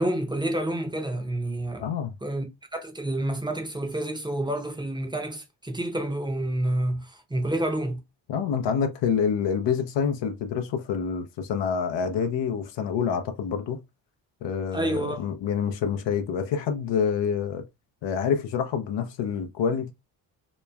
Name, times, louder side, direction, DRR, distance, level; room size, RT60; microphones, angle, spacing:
voice 1, 0.0-1.9 2.2-2.4 2.7-8.0 14.7-15.2, right 1 dB, 10° right, 0.7 m, -28 dB
voice 2, 1.8-2.1 8.3-13.8 14.4-17.6 18.0-19.9, left 7 dB, 75° left, 0.6 m, -27 dB
3.0 x 2.2 x 2.2 m
supercardioid pair, 60°, 44 cm